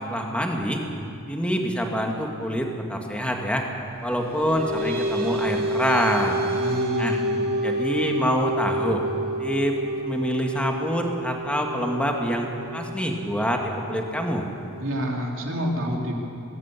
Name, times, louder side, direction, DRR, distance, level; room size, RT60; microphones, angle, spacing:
voice 1, 0.1-0.8 1.3-3.6 4.0-6.4 7.0-7.2 7.6-9.0 9.4-9.8 10.0-14.5, equal, 5° left, 1 dB, 2.0 m, -26 dB
sound 1, 4.1-15.1, right 1 dB, 45° right, 2.4 m, -29 dB
voice 2, 6.5-7.4 14.8-16.1, equal, 65° right, -1 dB, 3.5 m, -28 dB
20.5 x 16.5 x 8.4 m, 2.7 s
head